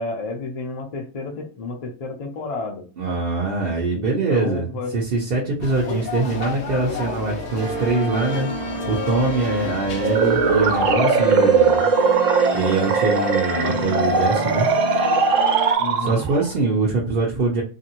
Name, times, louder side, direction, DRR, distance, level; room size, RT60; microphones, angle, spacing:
voice 1, 0.0-2.9 3.9-5.0 5.8-6.0 15.8-16.2, left 3 dB, 45° left, 2 dB, 0.5 m, -31 dB
voice 2, 3.0-4.6 4.9-8.5 8.9-11.9 12.5-14.7 16.0-17.6, right 3 dB, 55° right, -3 dB, 0.7 m, -23 dB
sound 1, 5.6-10.9, left 4 dB, 65° left, 0.9 m, -33 dB
sound 2, 7.6-15.7, equal, 20° right, 0.7 m, -28 dB
sound 3, 10.0-16.5, right 5 dB, 80° right, 0.9 m, -20 dB
2.6 x 2.6 x 2.8 m, 0.37 s
omnidirectional pair, 1.3 m